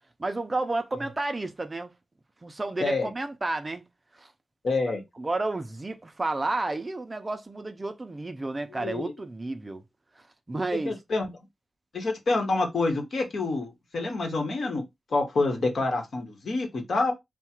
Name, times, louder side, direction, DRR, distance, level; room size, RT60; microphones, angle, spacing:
voice 1, 0.2-1.9 2.4-3.8 4.1-4.3 5.2-9.8 10.2-11.0, right 2 dB, 20° right, 0.5 m, -31 dB
voice 2, 4.6-5.0 8.7-9.1 10.8-11.3 11.9-14.8 15.1-17.1, left 3 dB, 55° left, 1.3 m, -27 dB
3.6 x 2.4 x 4.4 m
wide cardioid pair, 165°, 0 cm